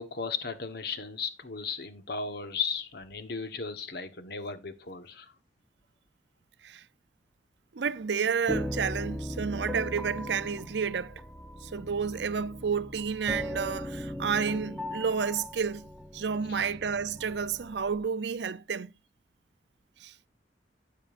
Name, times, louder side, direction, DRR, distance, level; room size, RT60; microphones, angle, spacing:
voice 1, 0.0-5.3 16.5-16.7, left 5 dB, 65° left, 1.2 m, -36 dB
voice 2, 7.7-11.2 11.6-15.9 16.1-18.9 20.0-20.1, right 6 dB, 75° right, 0.5 m, -30 dB
sound 1, 8.5-18.1, equal, 5° left, 0.8 m, -38 dB
12.5 x 9.0 x 2.5 m
head